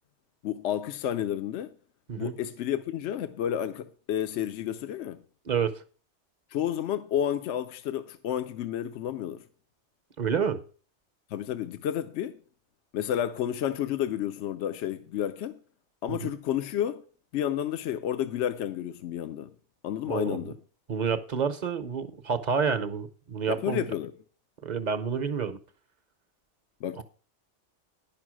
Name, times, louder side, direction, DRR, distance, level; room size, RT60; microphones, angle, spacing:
voice 1, 0.4-1.7 2.2-5.2 6.5-9.4 11.3-12.4 12.9-15.6 16.0-17.0 17.3-19.5 19.8-20.6 23.5-24.1 26.8-27.0, left 10 dB, 75° left, 0.9 m, -31 dB
voice 2, 5.5-5.8 10.2-10.6 16.1-16.3 20.1-20.5 20.9-23.8 24.6-25.6 27.0-27.1, right 6 dB, 45° right, 0.7 m, -29 dB
11.0 x 5.5 x 6.1 m
omnidirectional pair, 1.2 m